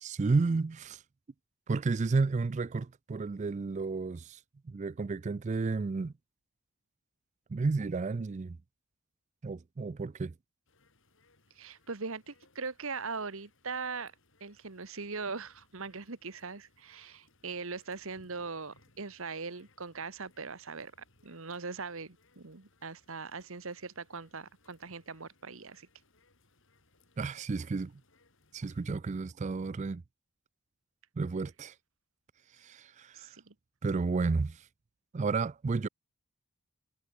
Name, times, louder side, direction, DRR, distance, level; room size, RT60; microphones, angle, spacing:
voice 1, 0.0-1.0 1.7-4.4 4.7-6.1 7.5-8.6 9.4-10.3 27.2-27.9 28.5-30.0 31.2-31.7 32.6-33.3 33.8-34.6 35.1-35.9, right 4 dB, 30° right, 0.3 m, -32 dB
sound 1, 10.7-29.0, left 3 dB, 55° left, 7.3 m, -68 dB
voice 2, 11.5-14.1 14.4-20.9 21.2-25.9 33.1-33.5, right 4 dB, 60° right, 1.4 m, -40 dB
head